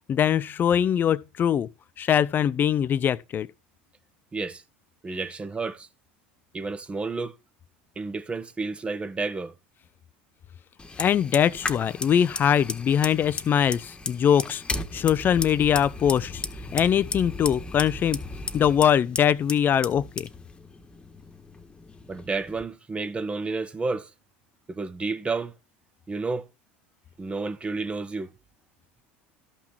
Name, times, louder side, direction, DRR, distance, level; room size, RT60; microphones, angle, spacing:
voice 1, 0.1-1.7 2.0-3.5 11.0-14.6 14.9-16.4 16.7-18.2 18.5-20.3, left 9 dB, 40° left, 0.6 m, -22 dB
voice 2, 4.3-4.6 5.0-5.9 6.5-7.4 8.0-9.5 22.1-24.1 24.7-25.5 26.1-26.5 27.2-28.3, right 3 dB, 20° right, 1.3 m, -31 dB
Fire, 10.8-22.6, left 3 dB, 20° left, 1.6 m, -36 dB
13.5 x 5.9 x 4.6 m
hypercardioid pair, 90°, 5 cm